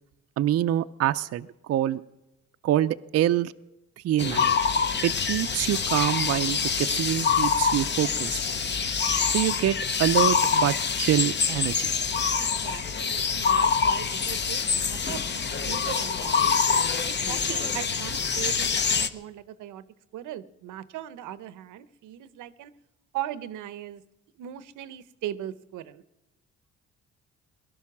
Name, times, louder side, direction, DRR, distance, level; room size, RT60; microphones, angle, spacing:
voice 1, 0.4-2.0 2.6-3.5 4.0-4.5 5.0-8.4 9.3-11.9, right 12 dB, 55° right, 10 dB, 0.5 m, -25 dB
sound 1, 4.2-19.1, left 6 dB, 35° left, 0.8 m, -25 dB
voice 2, 12.4-16.5 17.0-19.8 20.1-22.7 23.1-24.0 24.4-26.0, right 12 dB, 85° right, 15 dB, 0.8 m, -39 dB
18.5 x 12.0 x 6.0 m, 0.96 s
cardioid pair, 90°, 30 cm